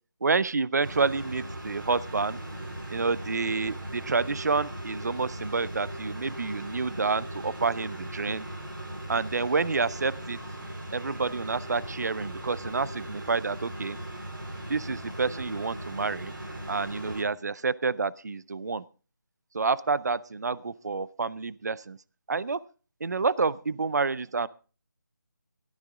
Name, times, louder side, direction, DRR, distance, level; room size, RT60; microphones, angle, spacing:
voice 1, 0.2-2.4 2.9-8.4 9.1-10.4 10.9-14.0 14.7-16.3 16.7-18.8 19.5-22.0 22.3-22.6 23.0-24.5, right 4 dB, 55° right, 20 dB, 0.6 m, -28 dB
sound 1, 0.8-17.2, right 1 dB, 80° right, 4.6 m, -38 dB
15.5 x 13.0 x 3.7 m, 0.36 s
figure-of-eight pair, 175°, 11 cm